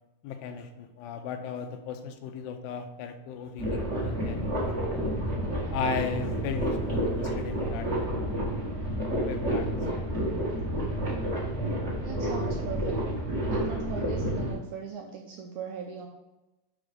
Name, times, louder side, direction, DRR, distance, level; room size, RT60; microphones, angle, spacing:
voice 1, 0.2-5.1 5.7-7.9 9.3-9.7, left 6 dB, 80° left, 7 dB, 2.5 m, -36 dB
sound 1, 3.6-14.5, right 1 dB, 40° right, 1.0 m, -30 dB
voice 2, 12.0-13.0 13.5-16.1, right 6 dB, 85° right, 1 dB, 1.7 m, -39 dB
6.2 x 5.0 x 5.1 m, 1.0 s
omnidirectional pair, 4.3 m